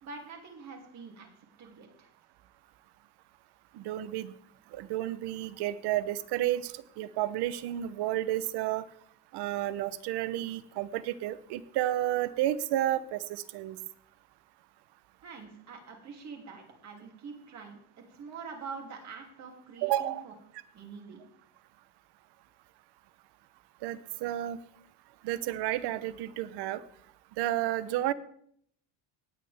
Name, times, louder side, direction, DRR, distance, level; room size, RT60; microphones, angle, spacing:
voice 1, 0.0-1.3 1.6-2.1 15.2-20.3 20.7-21.3, right 5 dB, 40° right, 2 dB, 2.8 m, -45 dB
voice 2, 3.7-4.3 4.7-8.9 9.3-13.8 19.8-20.2 23.8-24.6 25.2-26.8 27.4-28.1, right 13 dB, 65° right, 16 dB, 0.8 m, -31 dB
17.5 x 9.4 x 3.5 m, 0.67 s
cardioid pair, 160°, 43 cm